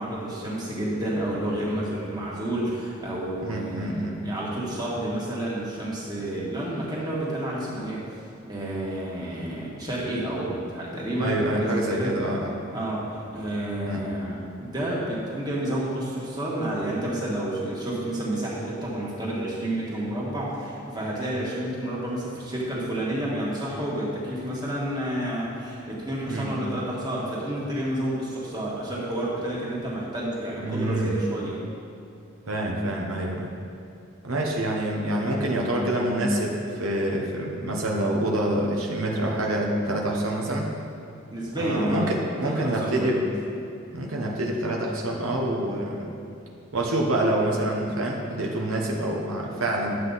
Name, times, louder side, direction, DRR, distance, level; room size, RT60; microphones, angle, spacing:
voice 1, 0.0-12.1 12.7-31.6 41.3-42.2 42.4-43.1, right 1 dB, 20° right, -6 dB, 1.8 m, -30 dB
voice 2, 3.4-4.1 11.2-12.6 13.8-14.0 26.3-26.6 30.6-31.2 32.5-33.5 34.2-40.7 41.6-43.2 43.9-46.1 46.7-50.0, right 1 dB, 80° right, -1 dB, 1.1 m, -26 dB
11.5 x 7.7 x 4.1 m, 2.6 s
head